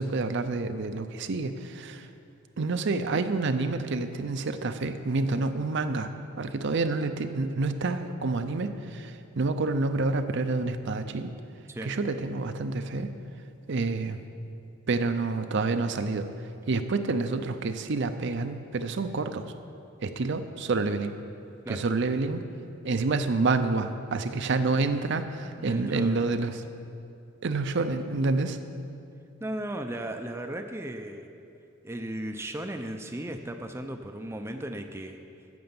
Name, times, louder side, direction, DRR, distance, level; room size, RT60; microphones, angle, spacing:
voice 1, 0.0-2.1 2.6-6.1 6.4-11.3 11.8-13.1 13.7-14.2 14.9-16.3 16.7-19.5 20.0-21.1 21.7-22.4 22.8-26.6 27.4-28.6, right 3 dB, 60° right, 9 dB, 0.6 m, -28 dB
voice 2, 25.6-26.2 29.4-31.3 31.8-35.2, right 1 dB, 10° right, 5 dB, 0.5 m, -36 dB
9.6 x 7.7 x 7.0 m, 2.5 s
head